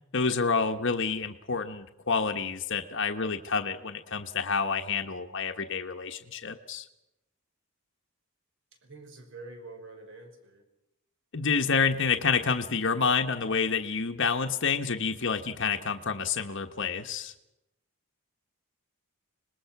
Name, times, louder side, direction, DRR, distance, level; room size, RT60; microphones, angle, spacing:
voice 1, 0.1-6.9 11.3-17.3, left 5 dB, 55° left, 5 dB, 1.2 m, -28 dB
voice 2, 8.8-10.6, right 3 dB, 55° right, 4 dB, 5.2 m, -46 dB
25.5 x 20.5 x 6.0 m, 0.90 s
head